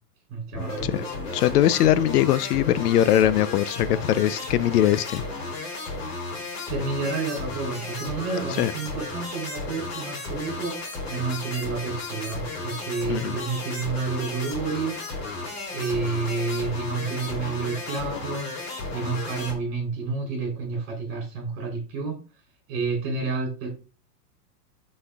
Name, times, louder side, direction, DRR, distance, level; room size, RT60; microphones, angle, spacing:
voice 1, 0.3-0.9 6.7-15.4 15.7-22.2 22.7-23.7, right 4 dB, 25° right, 3.5 m, -30 dB
sound 1, 0.5-19.5, left 3 dB, 40° left, 3.0 m, -34 dB
voice 2, 1.3-5.2 8.6-8.7 13.1-13.4, left 12 dB, 75° left, 0.6 m, -21 dB
11.0 x 4.2 x 2.4 m
supercardioid pair, 180°, 47 cm